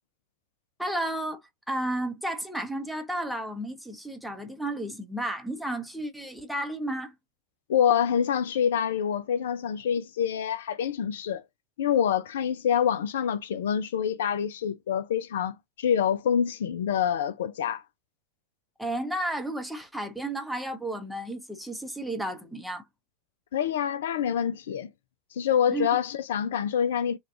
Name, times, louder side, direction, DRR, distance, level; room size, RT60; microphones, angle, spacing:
voice 1, 0.8-1.4 1.7-7.1 18.8-22.9 25.7-25.9, right 1 dB, ahead, 0.7 m, -32 dB
voice 2, 7.7-11.4 11.8-17.8 23.5-24.9 25.3-27.2, left 8 dB, 60° left, 0.3 m, -26 dB
3.3 x 2.3 x 2.4 m
figure-of-eight pair, 90°, 0 cm